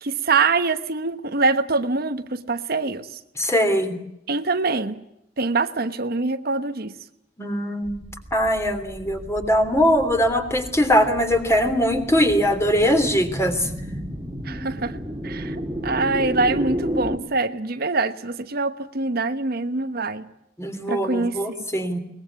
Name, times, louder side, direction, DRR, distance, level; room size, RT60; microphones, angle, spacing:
voice 1, 0.0-3.1 4.3-5.0 5.4-6.9 14.4-15.0 15.2-20.3 20.9-21.4, right 3 dB, 55° right, 9 dB, 1.1 m, -24 dB
voice 2, 3.4-4.0 7.4-8.0 8.3-13.7 20.6-22.0, equal, 15° left, 6 dB, 3.1 m, -21 dB
sound 1, 7.8-17.2, equal, 15° right, 2.0 m, -32 dB
22.5 x 20.0 x 8.2 m, 0.82 s
head